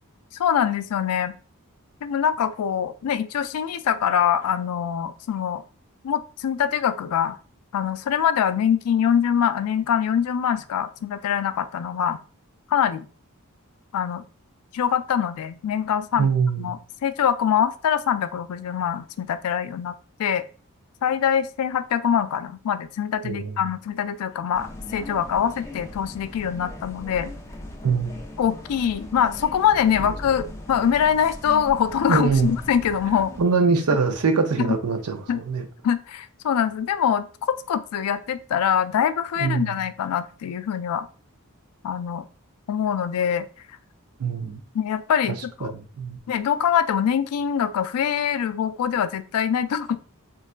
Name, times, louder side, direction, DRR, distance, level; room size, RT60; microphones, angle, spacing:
voice 1, 0.4-1.3 2.0-5.6 6.0-7.4 7.7-12.2 12.7-13.1 13.9-14.2 14.7-16.3 16.6-19.9 20.2-20.4 21.0-27.3 28.4-33.3 34.6-34.7 35.3-35.4 35.8-41.1 41.8-42.2 42.7-43.5 44.7-45.7 46.3-50.0, left 8 dB, 80° left, 0.3 m, -24 dB
voice 2, 16.2-16.7 23.2-23.6 27.8-28.1 32.1-32.5 33.4-35.7 39.4-39.8 44.2-44.6 45.6-46.2, right 5 dB, 85° right, 0.5 m, -23 dB
sound 1, 24.5-33.4, left 1 dB, 15° left, 0.4 m, -38 dB
3.8 x 2.2 x 2.4 m
head